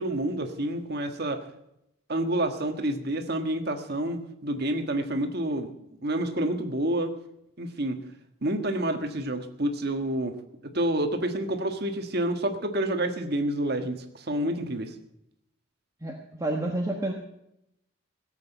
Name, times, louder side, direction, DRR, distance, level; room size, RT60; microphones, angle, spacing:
voice 1, 0.0-1.5 2.1-5.7 6.0-7.1 7.6-8.0 8.4-10.4 10.6-14.9, right 1 dB, 50° right, 6 dB, 1.5 m, -28 dB
voice 2, 16.0-17.1, right 1 dB, 15° right, 0 dB, 1.3 m, -29 dB
16.5 x 8.2 x 8.0 m, 0.82 s
head